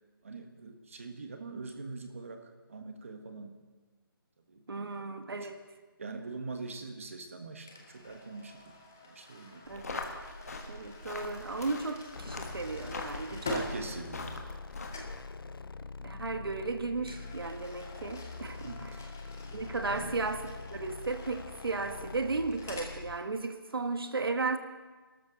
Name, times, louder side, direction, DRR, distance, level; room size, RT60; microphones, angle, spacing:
voice 1, 0.2-3.6 4.5-5.5 6.0-8.7 9.0-9.6 13.4-14.4 18.6-19.0 19.9-20.2, right 3 dB, 35° right, 6 dB, 1.3 m, -43 dB
voice 2, 4.7-5.6 9.7-10.0 10.7-13.6 16.0-18.9 19.5-20.4 20.7-24.6, right 3 dB, 75° right, 7 dB, 1.5 m, -35 dB
sound 1, 7.7-14.7 14.9-15.2 17.0-23.0, left 1 dB, 5° left, 0.4 m, -46 dB
sound 2, 9.6-15.2, left 3 dB, 40° left, 1.5 m, -42 dB
sound 3, 12.2-23.2, left 4 dB, 70° left, 0.6 m, -44 dB
24.0 x 13.0 x 4.0 m, 1.3 s
hypercardioid pair, 175°, 12 cm